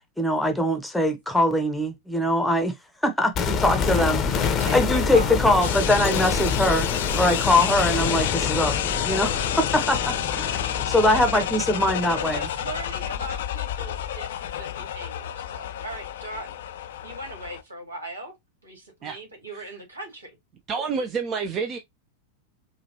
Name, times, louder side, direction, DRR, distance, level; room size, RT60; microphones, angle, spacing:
voice 1, 0.2-2.7 3.0-4.3 4.7-6.9 7.2-8.7 9.0-10.6 10.9-12.5, left 1 dB, 5° left, 0.8 m, -22 dB
sound 1, 3.3-13.4 13.6-13.7, left 6 dB, 30° left, 0.7 m, -27 dB
voice 2, 4.4-6.0 10.5-10.7 11.1-11.5 12.1-16.6 17.0-18.3 18.6-20.3, right 1 dB, 80° right, 1.9 m, -38 dB
sound 2, 5.6-17.6, left 10 dB, 60° left, 0.4 m, -30 dB
voice 3, 20.7-21.8, right 5 dB, 30° right, 0.6 m, -28 dB
4.9 x 2.4 x 2.8 m
figure-of-eight pair, 90°, 0 cm